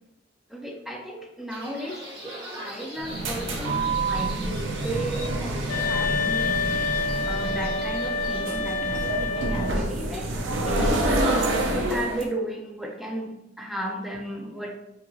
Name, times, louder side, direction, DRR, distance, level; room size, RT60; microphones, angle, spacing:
voice 1, 0.5-6.6 7.3-10.3 10.6-14.8, right 1 dB, ahead, 1 dB, 0.4 m, -34 dB
sound 1, 1.5-8.4, equal, 25° right, 1.2 m, -41 dB
sound 2, 3.0-12.3, right 2 dB, 75° right, 0.6 m, -27 dB
sound 3, 5.7-9.8, left 4 dB, 80° left, 0.8 m, -28 dB
4.6 x 2.6 x 2.4 m, 0.90 s
head